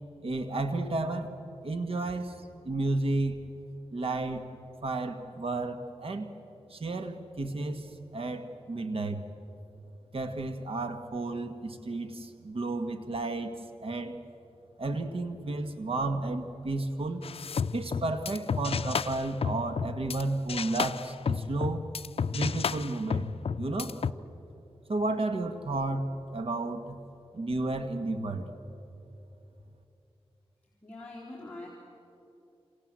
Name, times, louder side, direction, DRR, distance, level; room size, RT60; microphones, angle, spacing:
voice 1, 0.2-1.3 1.6-3.4 3.9-4.4 4.8-6.3 6.7-9.3 10.1-13.5 13.8-14.2 14.8-17.3 17.7-21.9 22.3-23.3 23.6-23.9 24.9-27.0 27.3-28.5, right 2 dB, 60° right, 7 dB, 1.7 m, -32 dB
sound 1, 17.2-20.2 20.5-24.1, left 6 dB, 65° left, 0.5 m, -32 dB
voice 2, 30.8-31.7, left 2 dB, 10° left, -6 dB, 4.1 m, -43 dB
27.5 x 27.5 x 7.6 m, 2.9 s
wide cardioid pair, 120°, 11 cm